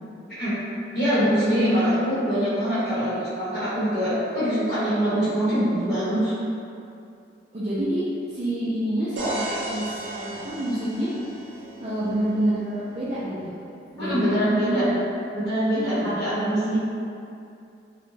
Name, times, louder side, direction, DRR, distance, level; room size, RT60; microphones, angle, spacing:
voice 1, 0.9-6.3 14.0-14.9 15.3-16.8, equal, 55° left, -14 dB, 0.8 m, -23 dB
voice 2, 7.5-8.0 8.3-11.1 11.8-13.5 13.9-15.0 15.7-16.5, right 1 dB, 40° right, -11 dB, 0.3 m, -28 dB
sound 1, 9.2-13.0, right 1 dB, 85° right, 0.6 m, -34 dB
2.3 x 2.0 x 3.1 m, 2.5 s
head